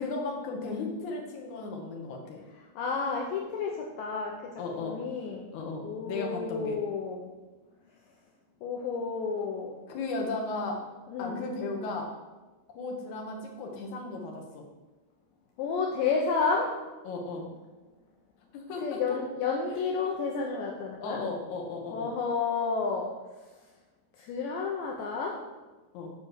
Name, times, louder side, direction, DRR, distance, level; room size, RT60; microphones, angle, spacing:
voice 1, 0.0-2.4 4.6-5.0 5.5-6.8 9.9-10.8 11.2-12.1 12.7-14.7 17.0-17.5 18.5-19.2 19.7-19.8 21.0-22.1 25.9-26.1, left 3 dB, 60° left, 1 dB, 2.2 m, -35 dB
voice 2, 2.8-5.5 5.8-7.3 8.6-9.8 11.1-11.5 15.6-16.7 18.8-21.2 21.9-23.1 24.2-25.4, left 5 dB, 80° left, 0 dB, 2.1 m, -31 dB
7.7 x 5.2 x 6.6 m, 1.2 s
omnidirectional pair, 4.7 m